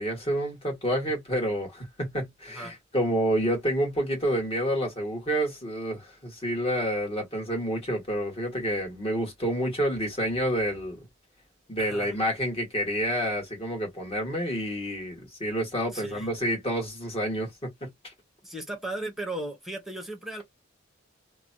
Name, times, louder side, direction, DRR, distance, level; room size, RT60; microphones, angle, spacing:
voice 1, 0.0-11.1 11.7-18.1, equal, 30° left, 1.6 m, -29 dB
voice 2, 2.5-2.8 11.8-12.2 15.9-16.3 18.4-20.4, right 1 dB, ahead, 0.9 m, -36 dB
2.9 x 2.2 x 2.7 m
head